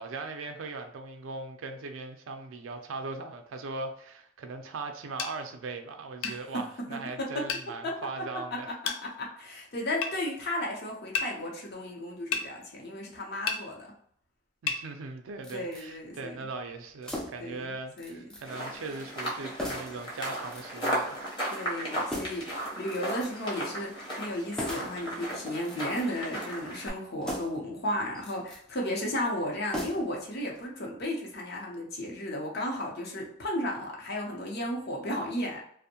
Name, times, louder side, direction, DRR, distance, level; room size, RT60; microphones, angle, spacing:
voice 1, 0.0-8.7 14.6-21.2, right 3 dB, 80° right, 5 dB, 0.4 m, -39 dB
sound 1, 5.2-5.4 6.2-6.4 7.5-7.7 8.9-9.0 10.0-10.2 11.2-11.3 12.3-12.5 13.5-13.6 14.7-14.8, left 6 dB, 85° left, 0.4 m, -30 dB
voice 2, 7.2-7.5 7.8-7.9 9.0-13.9 15.5-16.4 17.4-18.2 21.5-35.6, left 1 dB, 55° left, -1 dB, 0.6 m, -34 dB
sound 2, 15.4-15.9 17.0-17.5 18.0-18.5 18.7-18.8 19.6-20.0 20.5-21.1 22.1-22.5 22.9-23.5 24.6-25.0 25.6-26.3 27.2-27.7 28.1-28.6 29.7-30.2 30.5-30.6, left 1 dB, 5° left, 0.4 m, -38 dB
sound 3, 18.4-26.9, right 1 dB, 25° left, 0.8 m, -36 dB
2.5 x 2.0 x 2.8 m, 0.67 s
head